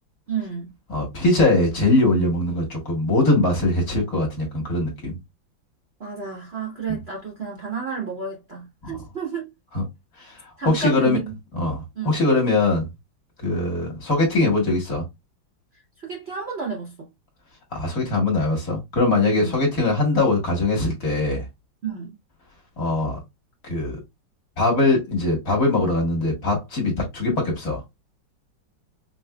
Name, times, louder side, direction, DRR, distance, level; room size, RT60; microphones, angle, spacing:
voice 1, 0.3-0.7 6.0-9.5 10.6-11.3 12.0-12.1 16.0-16.9 19.2-19.5 21.8-22.1, right 5 dB, 50° right, 0.8 m, -30 dB
voice 2, 0.9-5.2 6.9-7.0 9.7-9.9 10.2-10.3 10.7-11.2 11.5-12.9 13.4-15.0 17.7-21.5 22.8-23.2 23.6-24.0 24.6-27.8, left 2 dB, 50° left, 1.8 m, -21 dB
5.3 x 2.6 x 2.2 m
omnidirectional pair, 2.1 m